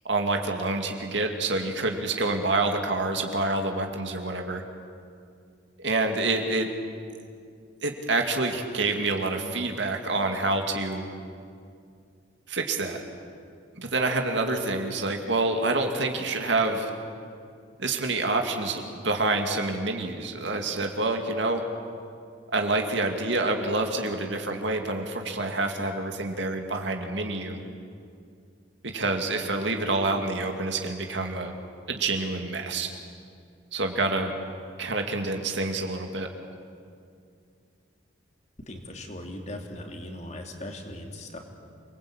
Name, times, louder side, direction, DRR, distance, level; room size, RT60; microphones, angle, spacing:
voice 1, 0.0-4.6 5.8-6.7 7.8-11.1 12.5-13.0 13.7-16.9 17.8-21.6 22.5-27.6 28.8-31.6 31.9-32.9 33.7-34.3 34.8-36.3, right 2 dB, 65° right, 3 dB, 2.4 m, -27 dB
voice 2, 38.7-41.4, left 1 dB, 35° left, 3 dB, 2.9 m, -39 dB
28.5 x 21.0 x 8.9 m, 2.3 s
head